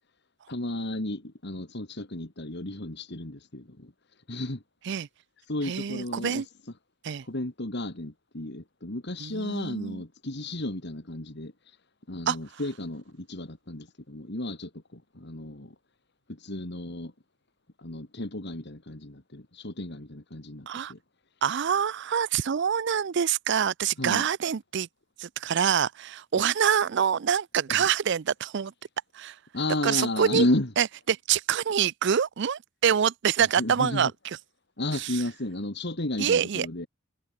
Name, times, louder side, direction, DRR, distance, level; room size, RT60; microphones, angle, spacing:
voice 1, 0.5-3.9 4.3-4.6 5.5-6.5 7.2-11.8 12.1-15.7 16.3-17.1 17.8-21.0 24.0-24.2 27.7-27.8 29.5-30.7 33.6-34.1 34.8-36.9, left 1 dB, 55° left, 2.3 m, -33 dB
voice 2, 5.6-6.5 7.0-7.3 9.2-10.0 12.3-12.4 20.7-20.9 21.4-24.9 25.2-28.7 29.1-29.4 29.8-30.4 30.8-34.4 34.9-35.2 36.2-36.7, right 8 dB, 55° right, 0.5 m, -26 dB
head